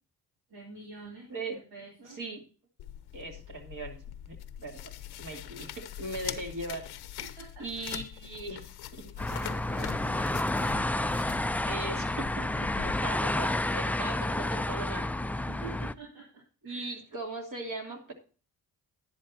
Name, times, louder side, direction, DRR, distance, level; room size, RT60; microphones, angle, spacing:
voice 1, 0.5-2.2 7.2-7.7 9.0-11.6 12.1-12.3 12.5-12.9 15.5-16.9, right 3 dB, 85° right, -3 dB, 3.3 m, -48 dB
voice 2, 2.0-2.4 3.1-4.9 5.2-6.9 7.6-9.0 11.7-12.5 12.8-15.5 16.6-18.1, right 2 dB, 55° right, 2 dB, 2.7 m, -39 dB
sound 1, 2.8-12.9, left 12 dB, 90° left, 0.8 m, -43 dB
sound 2, 9.2-15.9, left 1 dB, 5° left, 0.3 m, -30 dB
11.0 x 10.0 x 2.8 m, 0.38 s
cardioid pair, 70°, 38 cm